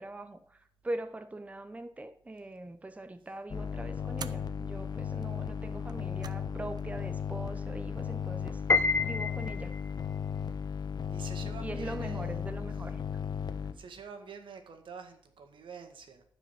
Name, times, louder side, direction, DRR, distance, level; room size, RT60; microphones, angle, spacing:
voice 1, 0.0-9.8 11.4-13.0, right 2 dB, 15° right, 10 dB, 0.7 m, -42 dB
sound 1, 2.6-3.0 4.1-4.5 5.8-6.5 6.8-6.9 8.0-8.5, right 6 dB, 55° right, 0.6 m, -47 dB
sound 2, 3.5-13.7, left 7 dB, 55° left, 1.0 m, -36 dB
Piano, 8.7-10.0, left 4 dB, 25° left, 0.7 m, -28 dB
voice 2, 11.1-12.7 13.7-16.2, right 5 dB, 80° right, 5 dB, 1.8 m, -47 dB
13.5 x 5.0 x 7.2 m, 0.63 s
wide cardioid pair, 115°, 8 cm